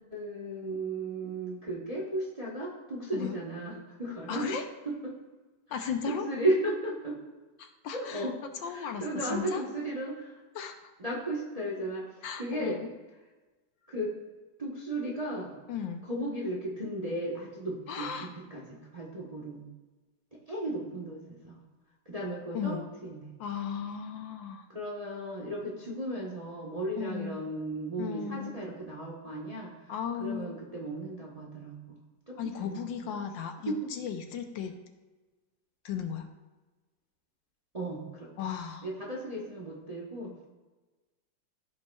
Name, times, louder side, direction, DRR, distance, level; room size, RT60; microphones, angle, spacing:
voice 1, 0.1-4.6 5.0-5.1 5.7-7.2 7.9-8.3 8.6-10.4 11.0-12.8 13.9-14.1 14.6-15.6 16.1-19.6 20.3-21.6 22.1-23.3 24.7-29.9 30.2-32.0 32.3-32.9 33.6-33.9 37.7-38.3 38.8-40.5, right 1 dB, 25° right, -3 dB, 0.9 m, -35 dB
voice 2, 4.3-4.6 5.7-6.3 7.6-8.3 8.6-9.6 10.5-10.9 12.2-12.9 15.7-16.0 17.9-18.3 22.5-22.8 23.4-24.7 27.0-27.4 28.0-28.7 29.9-30.6 32.4-34.7 35.8-36.3 38.4-38.9, left 7 dB, 75° left, 6 dB, 1.3 m, -36 dB
15.0 x 5.5 x 2.3 m, 1.2 s
omnidirectional pair, 2.2 m